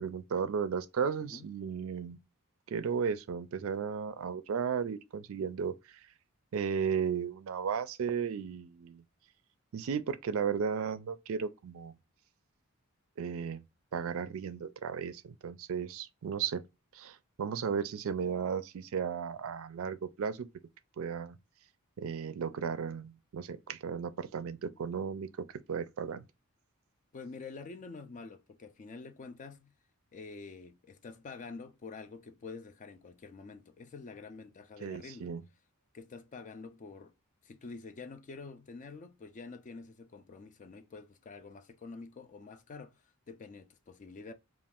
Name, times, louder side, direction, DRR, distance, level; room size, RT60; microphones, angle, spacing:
voice 1, 0.0-2.2 2.7-6.0 6.5-9.0 9.7-11.9 13.2-13.6 13.9-16.6 16.9-20.5 21.0-21.4 22.0-25.3 25.7-26.3 34.8-35.4, right 6 dB, 65° right, 0.4 m, -35 dB
voice 2, 27.1-29.7 30.1-35.3 35.9-37.1 37.4-44.3, left 4 dB, 35° left, 0.3 m, -47 dB
2.4 x 2.4 x 3.3 m
head